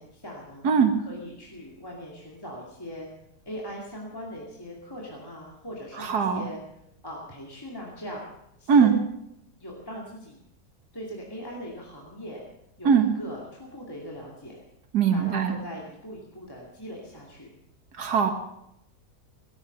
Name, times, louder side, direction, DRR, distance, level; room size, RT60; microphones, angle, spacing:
voice 1, 0.0-0.6 1.1-3.1 3.5-6.6 7.0-8.2 8.6-9.0 9.6-10.4 10.9-12.4 12.8-14.6 15.1-17.5, equal, 15° left, -3 dB, 2.5 m, -40 dB
voice 2, 6.0-6.4 8.7-8.9 12.8-13.1 14.9-15.6 18.0-18.3, right 6 dB, 75° right, 6 dB, 2.2 m, -20 dB
18.0 x 12.0 x 6.7 m, 0.82 s
omnidirectional pair, 1.7 m